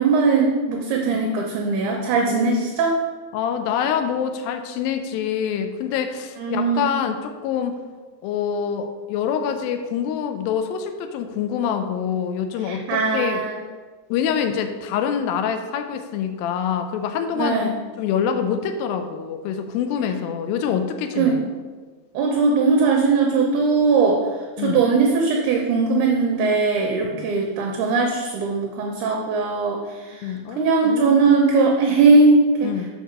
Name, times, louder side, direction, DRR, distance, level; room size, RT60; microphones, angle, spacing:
voice 1, 0.0-3.0 6.4-6.9 12.6-13.6 17.4-17.7 21.2-21.5 22.1-32.8, right 4 dB, 75° right, 1 dB, 2.0 m, -20 dB
voice 2, 2.2-2.5 3.3-7.8 8.2-13.4 14.1-17.6 18.0-21.4 24.6-24.8 27.0-27.3 30.2-31.3 32.6-32.9, left 8 dB, 90° left, 6 dB, 2.4 m, -26 dB
6.6 x 4.7 x 6.6 m, 1.4 s
omnidirectional pair, 4.1 m